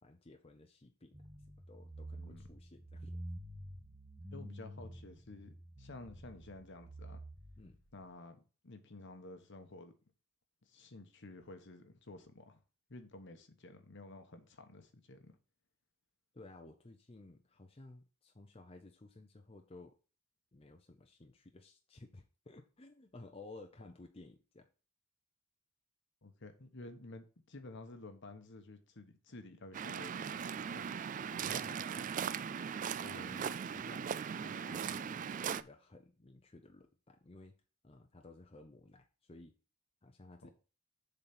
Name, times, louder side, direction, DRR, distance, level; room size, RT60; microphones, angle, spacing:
voice 1, 0.0-1.2 1.7-3.2 7.6-7.8 16.3-19.9 20.5-24.7 31.4-32.0 33.0-34.1 34.4-37.5 37.8-39.5 40.0-40.5, left 2 dB, 25° left, 0.7 m, -55 dB
sound 1, 1.1-8.0, right 1 dB, 20° right, 1.2 m, -49 dB
voice 2, 2.2-2.5 4.3-7.2 7.9-9.9 10.7-12.6 12.9-15.3 26.2-30.9 31.3-31.5 40.4-40.5, left 2 dB, 60° left, 1.1 m, -52 dB
Waves surf, 29.7-35.6, right 7 dB, 40° right, 0.3 m, -39 dB
6.9 x 4.1 x 5.9 m
head